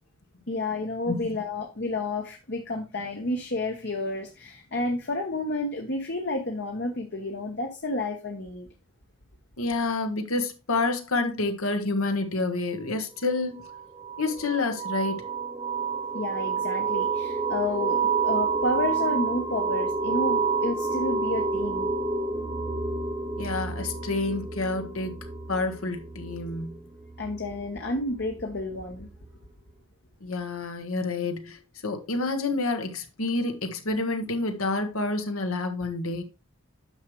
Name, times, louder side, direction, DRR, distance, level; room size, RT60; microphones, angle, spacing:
voice 1, 0.5-8.7 16.1-21.9 27.2-29.1, left 2 dB, 50° left, 1.1 m, -31 dB
voice 2, 1.1-1.4 9.6-13.6 14.2-15.2 23.4-26.8 30.2-36.2, left 3 dB, 70° left, 1.4 m, -29 dB
sound 1, 13.6-28.0, right 4 dB, 20° right, 0.8 m, -29 dB
9.6 x 6.4 x 3.1 m
head